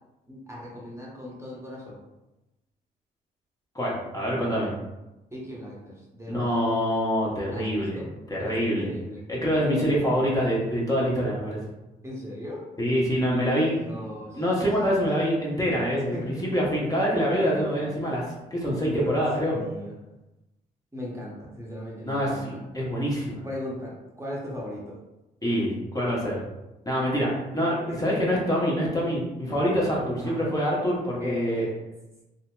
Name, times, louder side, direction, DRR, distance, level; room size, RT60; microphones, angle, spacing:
voice 1, 0.3-2.0 5.3-6.6 7.5-8.1 8.4-9.2 9.7-10.2 12.0-12.6 13.7-14.4 16.1-16.4 17.4-17.7 18.8-19.2 19.5-19.9 20.9-22.6 23.4-24.9 27.9-28.4 30.2-30.6 31.2-31.7, left 1 dB, 15° right, -5 dB, 0.8 m, -38 dB
voice 2, 3.7-4.7 6.3-8.0 8.3-8.9 9.3-11.6 12.8-14.0 14.3-18.2 18.5-19.6 22.0-23.4 25.4-26.4 26.9-31.7, equal, 20° left, -5 dB, 0.8 m, -25 dB
2.7 x 2.0 x 2.2 m, 0.99 s
hypercardioid pair, 50°, 20 cm